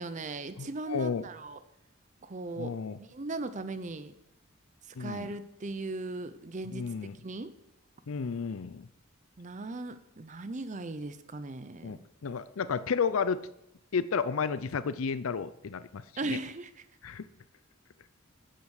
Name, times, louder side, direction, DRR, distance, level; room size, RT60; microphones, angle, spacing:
voice 1, 0.0-1.6 2.2-4.1 4.9-6.9 7.2-7.5 9.4-12.0 16.2-16.8, right 2 dB, 35° right, 12 dB, 0.6 m, -38 dB
voice 2, 0.6-1.2 2.5-3.0 5.0-5.3 6.7-7.2 8.1-8.9 11.8-13.4 13.9-16.4 17.0-17.3, left 5 dB, 80° left, 15 dB, 0.5 m, -32 dB
10.5 x 8.6 x 6.4 m, 0.84 s
head